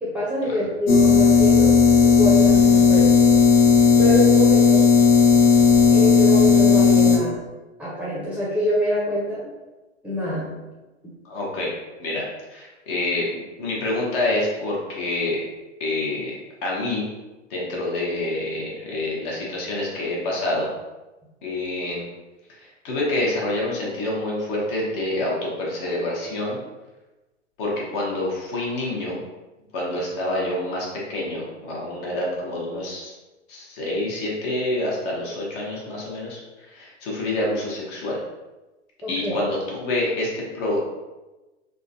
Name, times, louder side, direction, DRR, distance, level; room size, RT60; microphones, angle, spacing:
voice 1, 0.0-1.8 2.0-3.1 4.0-4.9 5.9-7.4 7.8-9.5 10.0-10.5 39.0-39.4, equal, 5° right, -8 dB, 0.7 m, -25 dB
sound 1, 0.9-7.2, left 6 dB, 75° left, 0.7 m, -15 dB
voice 2, 11.2-11.7 12.0-12.2 12.5-13.2 13.6-15.4 15.8-16.3 16.6-17.1 17.5-20.7 21.4-22.0 22.6-26.6 27.6-29.2 29.7-33.1 33.5-38.2 39.1-40.8, left 2 dB, 45° left, -3 dB, 1.1 m, -27 dB
3.5 x 2.3 x 2.6 m, 1.1 s
hypercardioid pair, 110°, 36 cm